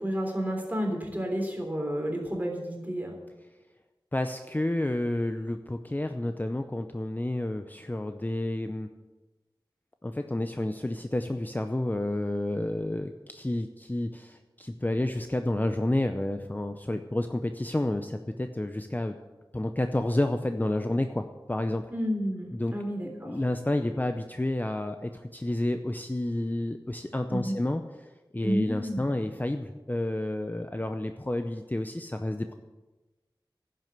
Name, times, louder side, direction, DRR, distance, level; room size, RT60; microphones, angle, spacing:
voice 1, 0.0-3.1 21.9-23.4 27.3-27.5 28.4-29.1, equal, 20° right, 1 dB, 3.5 m, -31 dB
voice 2, 4.1-8.9 10.0-19.2 19.5-21.8 22.5-22.7 23.2-27.8 28.3-32.5, left 1 dB, 20° left, 7 dB, 0.6 m, -30 dB
11.0 x 7.7 x 8.1 m, 1.1 s
wide cardioid pair, 65°, 9 cm